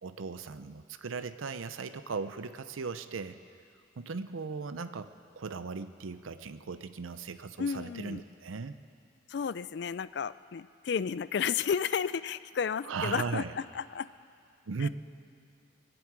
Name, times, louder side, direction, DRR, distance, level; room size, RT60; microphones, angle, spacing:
voice 1, 0.0-3.4 4.0-8.8 12.8-13.5 14.7-14.9, right 4 dB, 90° right, 11 dB, 0.6 m, -37 dB
voice 2, 7.6-8.2 9.3-14.1 14.8-14.9, left 6 dB, 55° left, 16 dB, 0.3 m, -32 dB
21.5 x 7.9 x 8.6 m, 2.6 s
head